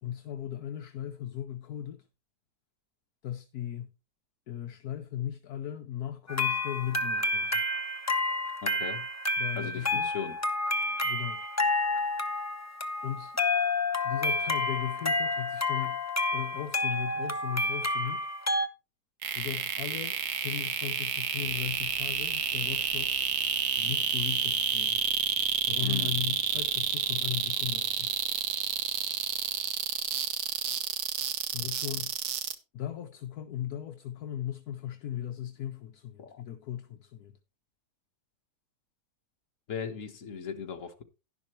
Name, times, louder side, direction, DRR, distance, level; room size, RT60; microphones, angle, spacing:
voice 1, 0.0-2.0 3.2-3.9 4.5-7.6 9.4-10.1 11.0-11.4 13.0-13.4 14.0-16.0 16.3-18.3 19.3-23.2 23.8-25.0 25.7-28.1 31.5-32.2 32.7-37.3, left 11 dB, 70° left, 1.3 m, -37 dB
sound 1, 6.3-18.7, left 2 dB, 15° left, 0.5 m, -30 dB
voice 2, 8.6-9.1 9.5-10.4 25.8-26.2 36.2-36.4 39.7-41.0, left 6 dB, 50° left, 1.7 m, -38 dB
sound 2, 19.2-32.5, right 8 dB, 70° right, 1.5 m, -29 dB
sound 3, 21.4-25.7, equal, 55° right, 8.3 m, -58 dB
11.5 x 11.0 x 3.0 m
omnidirectional pair, 1.8 m